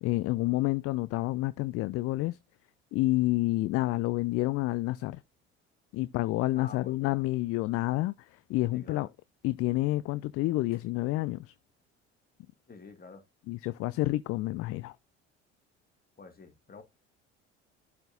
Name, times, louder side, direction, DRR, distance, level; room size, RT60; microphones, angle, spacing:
voice 1, 0.0-2.4 2.9-5.2 5.9-9.1 9.4-11.5 13.5-14.9, left 18 dB, 45° left, 0.4 m, -29 dB
voice 2, 6.6-7.3 8.7-9.1 12.7-13.2 16.2-16.8, left 4 dB, 25° left, 2.1 m, -49 dB
11.5 x 4.3 x 2.7 m
figure-of-eight pair, 55°, 35 cm